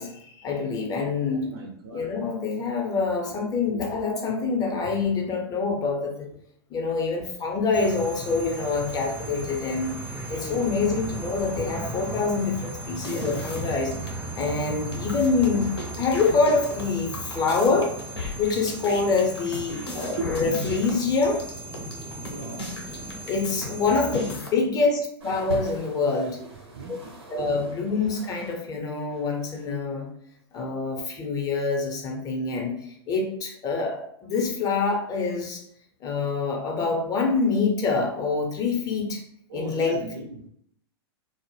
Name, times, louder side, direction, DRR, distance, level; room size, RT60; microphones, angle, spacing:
voice 1, 0.0-1.4 1.9-6.3 6.7-9.9 10.3-13.9 14.4-17.9 18.4-21.4 23.3-26.4 26.9-27.0 27.3-30.1 30.5-35.6 36.0-39.2 39.5-40.0, left 4 dB, 30° left, 1 dB, 0.6 m, -26 dB
voice 2, 1.2-2.1 3.2-3.3 3.7-3.9 4.8-4.9 10.3-10.7 20.2-20.3 22.2-22.7 24.1-24.2 26.7-27.1 39.5-40.4, right 3 dB, 60° right, 2 dB, 0.5 m, -37 dB
sound 1, 7.7-24.3, right 2 dB, 10° right, 0.4 m, -36 dB
sound 2, 12.9-14.1 14.4-14.5 14.8-23.7 23.9-24.5, left 2 dB, 80° left, 0.7 m, -36 dB
sound 3, 25.2-28.6 28.9-29.8 30.5-30.6, right 3 dB, 85° right, 0.8 m, -41 dB
2.1 x 2.0 x 3.1 m, 0.70 s
figure-of-eight pair, 100°, 13 cm